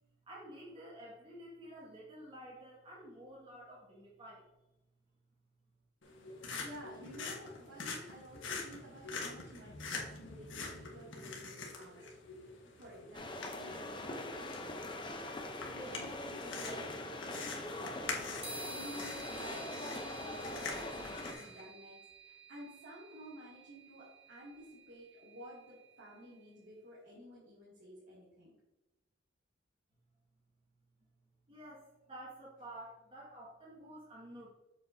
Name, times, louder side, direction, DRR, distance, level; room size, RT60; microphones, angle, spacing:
voice 1, 0.3-4.5 31.5-34.5, right 1 dB, 30° right, -6 dB, 2.0 m, -51 dB
sound 1, 6.0-21.6, left 4 dB, 80° left, 1.4 m, -46 dB
voice 2, 6.0-12.1 12.7-18.3 18.6-28.5, equal, 70° right, -9 dB, 2.6 m, -52 dB
sound 2, 13.1-21.3, left 1 dB, 25° left, 0.8 m, -42 dB
sound 3, 18.4-26.1, right 2 dB, 10° right, 2.4 m, -51 dB
7.8 x 6.9 x 2.8 m, 0.98 s
head